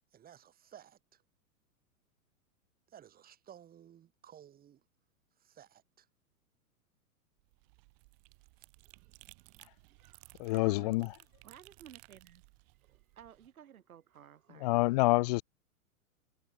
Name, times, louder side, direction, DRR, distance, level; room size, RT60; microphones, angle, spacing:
voice 1, 0.1-1.2 2.9-4.8 5.4-6.1, right 10 dB, 20° right, 1.8 m, -56 dB
sound 1, 7.4-13.5, right 40 dB or more, 40° right, 3.6 m, -59 dB
voice 2, 8.8-9.1 9.9-11.0 11.4-12.4 12.8-14.8, right 9 dB, 70° right, 8.0 m, -56 dB
voice 3, 10.4-11.1 14.6-15.4, left 21 dB, 30° left, 0.4 m, -27 dB
hypercardioid pair, 110°, 44 cm